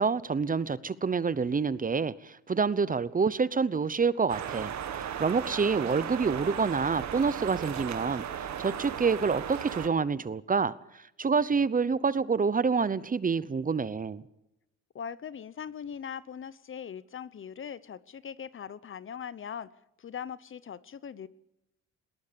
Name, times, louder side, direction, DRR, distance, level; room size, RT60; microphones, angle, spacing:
voice 1, 0.0-14.2, right 5 dB, 30° right, 17 dB, 0.8 m, -27 dB
sound 1, 4.3-9.9, right 9 dB, 65° right, 1.9 m, -36 dB
voice 2, 14.9-19.7 20.0-21.3, left 7 dB, 45° left, 18 dB, 0.8 m, -40 dB
20.5 x 18.5 x 6.9 m, 0.85 s
cardioid pair, 90°, 30 cm